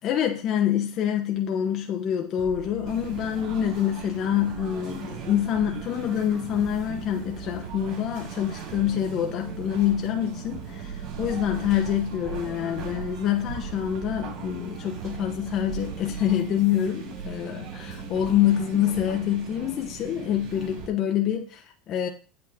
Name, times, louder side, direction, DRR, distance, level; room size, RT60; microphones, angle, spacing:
voice 1, 0.0-22.1, left 10 dB, 40° left, 1.0 m, -26 dB
sound 1, 2.4-19.2, right 6 dB, 70° right, 1.7 m, -43 dB
sound 2, 2.9-20.9, right 6 dB, 55° right, 4.7 m, -38 dB
8.5 x 8.1 x 3.7 m
supercardioid pair, 130°, 0 cm